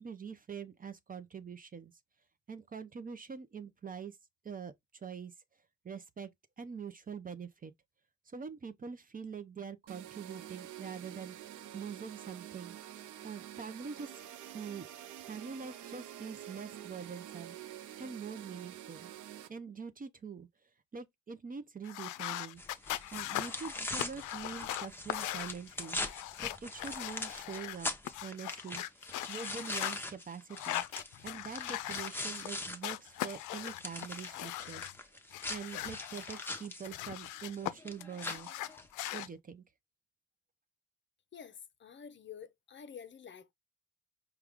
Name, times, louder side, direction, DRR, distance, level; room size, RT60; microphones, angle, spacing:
voice 1, 0.0-1.9 2.5-4.2 4.4-5.3 5.8-6.3 6.6-7.7 8.3-11.4 11.7-12.8 13.2-14.3 14.5-14.9 15.3-17.6 18.0-19.1 19.5-20.5 20.9-22.6 23.1-26.0 26.4-27.9 28.2-29.0 29.3-30.8 31.2-35.1 35.5-38.5 39.1-39.6, right 6 dB, 30° right, 0.6 m, -44 dB
sound 1, 9.9-19.5, right 12 dB, 80° right, 0.6 m, -48 dB
sound 2, 21.8-27.8 28.0-30.0 30.5-32.5 32.8-35.0 35.3-37.7 38.0-39.3, left 15 dB, 85° left, 0.5 m, -40 dB
sound 3, 22.6-32.8 33.1-39.2, left 2 dB, 5° left, 0.8 m, -42 dB
voice 2, 41.3-43.5, left 7 dB, 40° left, 0.6 m, -49 dB
4.7 x 2.3 x 3.5 m
cardioid pair, 90°, 30 cm